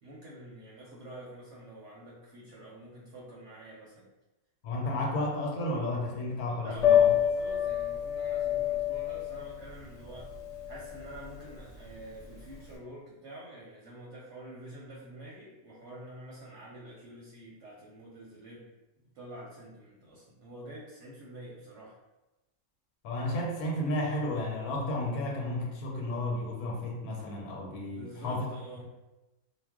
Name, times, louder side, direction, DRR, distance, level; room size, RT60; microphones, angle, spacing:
voice 1, 0.0-4.1 6.5-10.3 10.6-18.7 19.1-22.0 27.9-28.9, right 1 dB, 65° right, -4 dB, 0.8 m, -47 dB
voice 2, 4.6-7.1 23.0-28.4, left 1 dB, 85° left, -2 dB, 1.1 m, -32 dB
Piano, 6.8-12.7, left 10 dB, 60° left, 0.9 m, -28 dB
2.4 x 2.0 x 3.4 m, 1.0 s
omnidirectional pair, 1.5 m